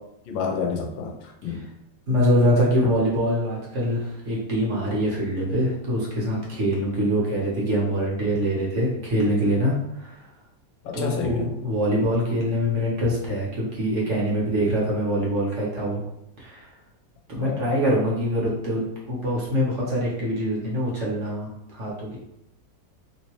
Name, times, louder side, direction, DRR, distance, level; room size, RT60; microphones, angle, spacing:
voice 1, 0.3-1.6 10.8-11.5 17.4-17.6, left 5 dB, 85° left, 2 dB, 1.3 m, -29 dB
voice 2, 2.1-10.3 10.9-16.0 16.4-16.7 17.3-18.8 19.1-22.2, equal, 50° right, -5 dB, 0.9 m, -24 dB
3.0 x 2.8 x 2.9 m, 0.82 s
omnidirectional pair, 1.9 m